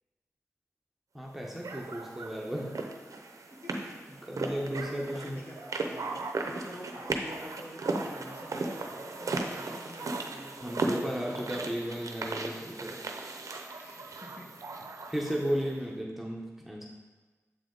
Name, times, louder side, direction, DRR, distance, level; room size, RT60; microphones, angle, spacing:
voice 1, 1.1-2.8 4.2-5.4 10.6-13.0 15.1-16.9, equal, 5° right, -3 dB, 1.0 m, -34 dB
sound 1, 1.6-15.7, right 3 dB, 75° right, 0.7 m, -37 dB
voice 2, 4.4-11.0 13.7-14.5 15.7-15.9, left 1 dB, 45° left, -4 dB, 1.8 m, -48 dB
7.1 x 4.8 x 3.9 m, 1.3 s
cardioid pair, 60°, 6 cm